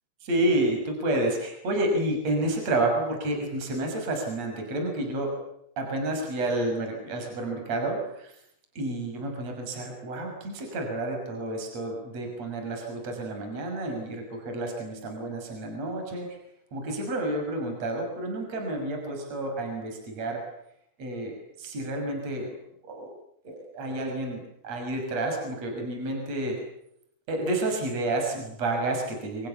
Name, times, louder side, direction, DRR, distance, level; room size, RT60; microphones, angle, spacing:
voice 1, 0.2-5.4 5.8-8.4 8.8-16.4 16.7-20.4 21.0-22.6 22.8-23.1 23.4-26.6 27.3-29.5, right 1 dB, 35° right, 3 dB, 7.1 m, -30 dB
29.0 x 26.0 x 7.1 m, 0.75 s
omnidirectional pair, 5.5 m